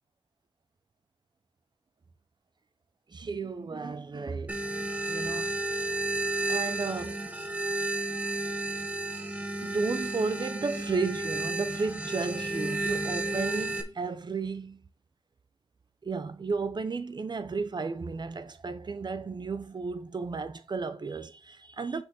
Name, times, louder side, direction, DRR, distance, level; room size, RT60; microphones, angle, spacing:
voice 1, 3.1-4.6 5.1-5.5 6.5-7.2 9.6-14.8 16.0-22.0, right 4 dB, 50° right, 0.7 m, -33 dB
sound 1, 4.5-13.8, right 2 dB, 15° right, 1.3 m, -32 dB
6.4 x 5.4 x 3.9 m
cardioid pair, 70°, 10 cm